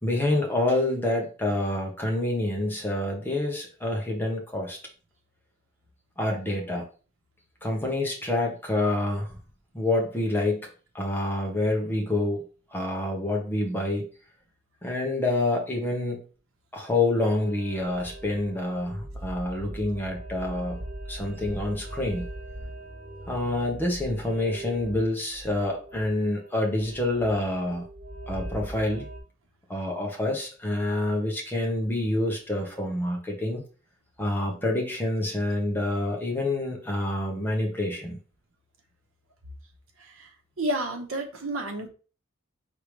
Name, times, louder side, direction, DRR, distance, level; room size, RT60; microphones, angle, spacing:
voice 1, 0.0-4.8 6.2-6.8 7.6-9.3 9.7-10.7 10.9-12.4 12.7-14.1 14.8-16.2 16.7-20.8 21.1-22.3 23.3-27.9 28.3-29.1 29.7-33.6 34.2-38.2, left 1 dB, 10° left, 0 dB, 1.1 m, -27 dB
sound 1, 17.2-29.2, right 1 dB, 35° right, 1.0 m, -40 dB
voice 2, 40.0-40.3 40.6-41.9, right 1 dB, 75° right, 3 dB, 1.0 m, -31 dB
4.8 x 3.4 x 3.2 m, 0.37 s
head